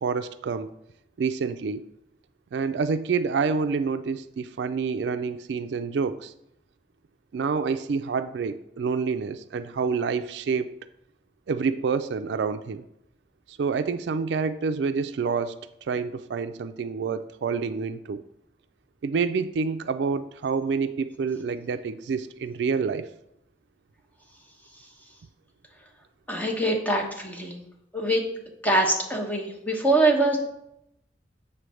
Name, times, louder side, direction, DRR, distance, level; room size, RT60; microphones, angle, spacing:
voice 1, 0.0-0.7 1.2-1.9 2.5-6.3 7.3-10.7 11.5-12.8 13.5-15.6 15.8-18.2 19.0-23.1, right 5 dB, 70° right, 10 dB, 0.4 m, -28 dB
voice 2, 26.3-27.7 27.9-28.2 28.6-30.4, right 2 dB, 10° left, 0 dB, 1.1 m, -23 dB
7.4 x 3.2 x 6.2 m, 0.81 s
head